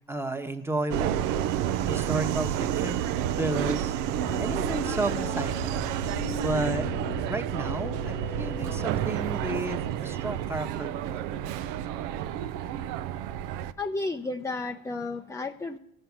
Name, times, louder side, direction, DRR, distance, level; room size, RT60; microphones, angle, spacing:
voice 1, 0.1-1.1 1.8-3.0 3.4-3.9 4.4-5.9 6.4-6.9 7.2-11.3, right 2 dB, 10° right, 7 dB, 1.1 m, -32 dB
Subway metro underground, 0.9-13.7, right 10 dB, 80° right, 0.7 m, -30 dB
sound 1, 4.2-11.7, left 12 dB, 50° left, 0.8 m, -41 dB
voice 2, 13.8-15.8, left 3 dB, 10° left, 6 dB, 0.5 m, -32 dB
15.5 x 7.8 x 8.5 m, 0.81 s
cardioid pair, 110°, 31 cm